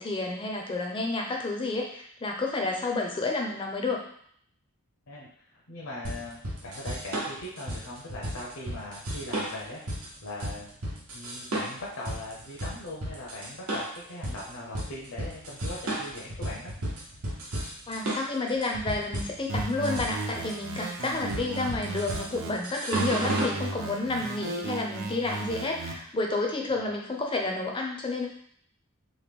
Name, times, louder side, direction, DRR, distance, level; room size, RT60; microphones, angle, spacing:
voice 1, 0.0-4.0 17.9-28.3, left 2 dB, 25° left, 1 dB, 0.4 m, -30 dB
voice 2, 5.1-9.8 10.2-10.7 11.1-16.7 21.0-21.4 26.7-27.0, left 1 dB, 70° left, -4 dB, 0.6 m, -40 dB
sound 1, 6.0-23.6, right 1 dB, 85° right, 0.9 m, -33 dB
sound 2, 19.5-22.5 22.9-25.9, right 3 dB, 60° right, 0.5 m, -35 dB
3.0 x 2.2 x 3.4 m, 0.64 s
head